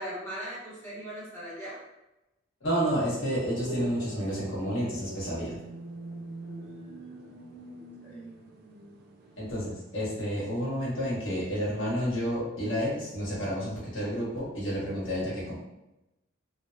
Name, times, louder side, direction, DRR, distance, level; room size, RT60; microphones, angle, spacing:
voice 1, 0.0-1.8 6.4-7.3 7.7-8.2 10.0-10.1, equal, 10° left, -9 dB, 0.9 m, -41 dB
voice 2, 2.6-5.6 9.4-15.5, equal, 65° left, -7 dB, 1.4 m, -30 dB
sound 1, 3.7-10.2, right 3 dB, 50° right, 0.4 m, -43 dB
3.1 x 2.3 x 2.7 m, 0.94 s
head